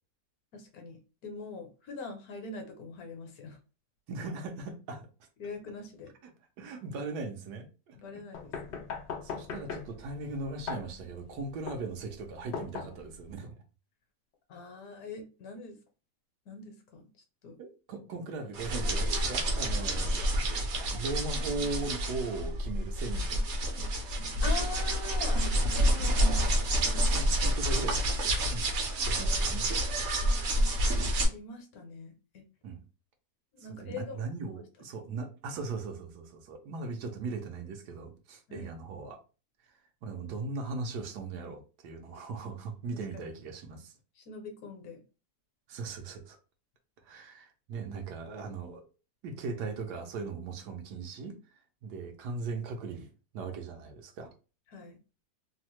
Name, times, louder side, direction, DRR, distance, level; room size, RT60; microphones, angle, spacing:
voice 1, 0.5-3.6 5.4-6.1 7.9-8.9 14.5-15.8 16.5-17.1 17.4-17.6 19.6-19.7 20.2-20.3 24.4-26.6 31.2-32.4 33.5-34.6 38.5-38.7 43.1-43.3 44.2-45.0 54.7-55.0, left 4 dB, 65° left, 4 dB, 1.1 m, -43 dB
voice 2, 4.1-5.1 6.6-8.0 9.2-13.5 17.6-20.3 20.7-23.4 27.0-28.7 29.1-29.7 32.6-32.8 33.7-39.2 40.0-43.9 45.7-46.4 47.0-48.8 49.2-51.4 51.8-54.3, right 4 dB, 80° right, 5 dB, 1.2 m, -39 dB
sound 1, 8.3-13.3, left 6 dB, 85° left, 0.6 m, -40 dB
sound 2, 18.5-31.3, right 1 dB, 55° right, 0.8 m, -28 dB
3.1 x 2.0 x 2.9 m, 0.33 s
omnidirectional pair, 1.8 m